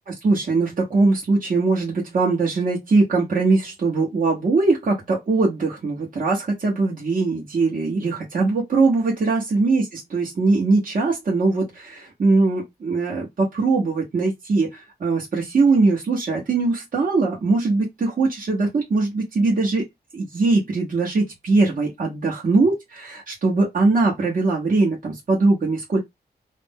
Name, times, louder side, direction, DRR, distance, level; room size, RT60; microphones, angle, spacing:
voice 1, 0.1-19.8 20.1-26.0, right 3 dB, 50° right, 1.0 m, -21 dB
2.5 x 2.0 x 3.5 m
wide cardioid pair, 100°, 17 cm